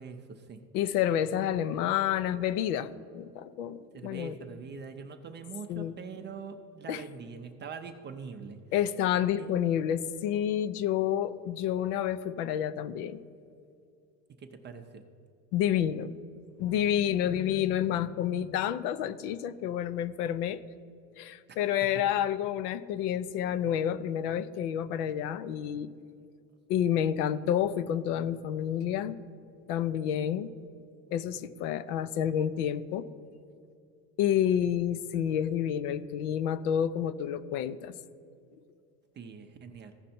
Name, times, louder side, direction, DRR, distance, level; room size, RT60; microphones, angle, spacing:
voice 1, 0.0-0.6 3.9-8.6 9.4-9.5 14.3-15.0 21.5-22.0 39.2-39.9, right 5 dB, 25° right, 6 dB, 0.5 m, -43 dB
voice 2, 0.7-4.4 5.7-6.0 6.9-7.0 8.7-13.2 15.5-16.1 16.6-20.6 21.2-25.9 26.7-29.2 29.7-30.5 31.1-33.1 34.2-37.9, left 10 dB, 70° left, 14 dB, 0.6 m, -29 dB
15.0 x 5.2 x 4.3 m, 2.5 s
supercardioid pair, 105°, 48 cm